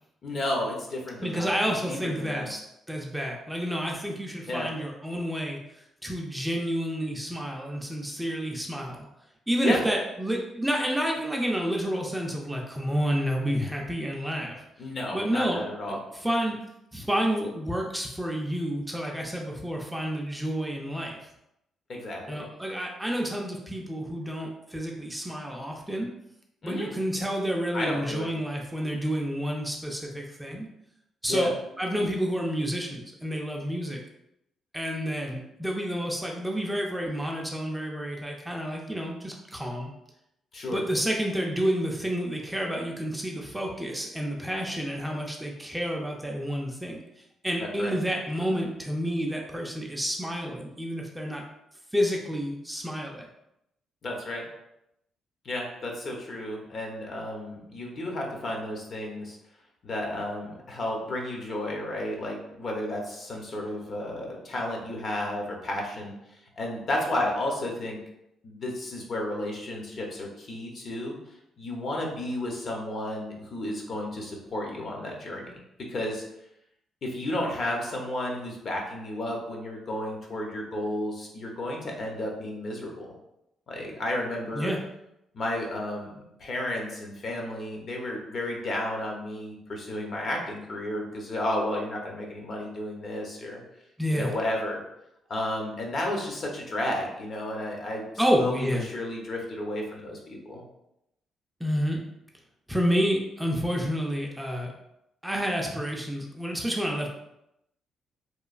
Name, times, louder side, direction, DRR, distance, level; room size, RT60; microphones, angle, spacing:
voice 1, 0.2-1.6 1.9-2.5 4.5-4.7 9.6-9.8 14.8-16.0 21.9-22.5 26.6-26.9 27.7-28.3 31.3-31.5 40.5-40.8 47.6-48.0 54.0-54.5 55.4-59.4 59.8-66.1 66.6-68.0 68.4-71.2 71.6-75.5 75.9-76.2 77.0-83.1 83.7-84.7 85.3-93.6 94.1-94.8 95.3-98.1 98.3-100.6, left 1 dB, 50° left, 0 dB, 0.7 m, -32 dB
voice 2, 1.2-2.6 2.9-5.6 6.0-9.1 9.5-14.6 15.1-15.6 15.9-16.6 16.9-21.2 22.3-26.1 26.6-30.7 31.2-31.5 31.8-34.0 34.7-39.9 40.7-47.0 47.4-51.4 51.9-53.3 84.5-84.8 94.0-94.3 98.2-98.9 101.6-102.0 102.7-104.7 105.2-107.1, equal, 5° right, -1 dB, 0.4 m, -29 dB
3.0 x 2.2 x 2.4 m, 0.83 s
cardioid pair, 90°, 0 cm